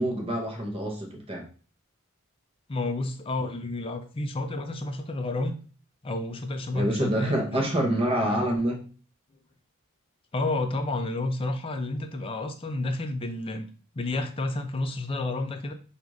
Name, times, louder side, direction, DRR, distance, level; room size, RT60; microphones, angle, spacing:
voice 1, 0.0-1.5 6.7-8.9, right 1 dB, 25° right, 1 dB, 0.7 m, -27 dB
voice 2, 2.7-5.6 6.0-7.6 8.2-8.4 10.3-13.7 13.9-15.7, left 2 dB, 25° left, 6 dB, 0.4 m, -30 dB
5.0 x 2.4 x 3.0 m, 0.39 s
head